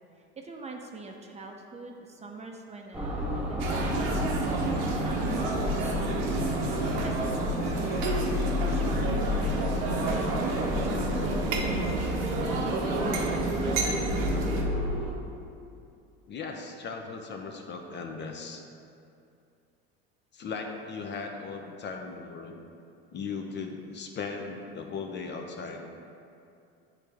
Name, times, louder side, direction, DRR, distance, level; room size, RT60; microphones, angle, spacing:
voice 1, 0.4-6.4 7.0-8.2 8.6-13.8, right 2 dB, 20° right, 2 dB, 0.6 m, -44 dB
sound 1, 2.9-15.1, left 2 dB, 5° right, 1.0 m, -31 dB
sound 2, 3.6-14.6, right 3 dB, 70° right, 0.9 m, -30 dB
voice 2, 16.3-18.6 20.3-22.6 23.1-25.9, left 4 dB, 35° left, 3 dB, 0.6 m, -37 dB
8.3 x 3.3 x 3.5 m, 2.5 s
supercardioid pair, 90°, 30 cm